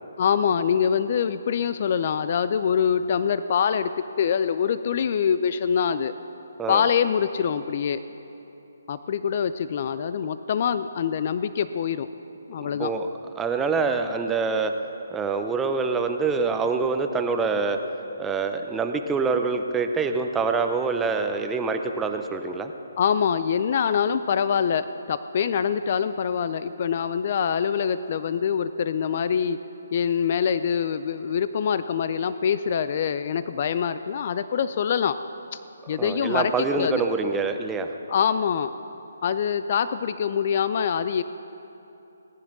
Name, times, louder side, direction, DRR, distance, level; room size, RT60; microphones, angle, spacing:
voice 1, 0.2-3.9 4.2-6.1 6.7-8.0 8.9-12.1 12.5-12.9 23.0-29.6 29.9-35.2 35.5-35.6 35.9-37.0 38.1-38.7 39.2-41.2, left 7 dB, 45° left, 13 dB, 0.4 m, -24 dB
voice 2, 12.6-13.1 13.4-14.7 15.1-17.8 18.2-22.7 35.9-37.9, right 4 dB, 10° right, 6 dB, 0.7 m, -25 dB
18.5 x 10.0 x 6.0 m, 3.0 s
figure-of-eight pair, 150°, 0 cm